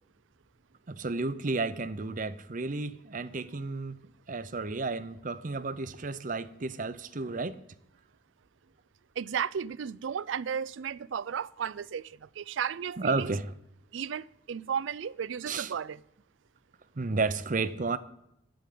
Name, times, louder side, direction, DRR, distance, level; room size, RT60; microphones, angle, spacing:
voice 1, 0.9-4.0 4.3-7.6 13.0-13.5 15.4-15.7 17.0-18.0, right 3 dB, 45° right, 0.7 m, -32 dB
voice 2, 9.2-13.3 13.9-16.0, right 7 dB, 80° right, 0.4 m, -34 dB
11.5 x 9.2 x 8.5 m
head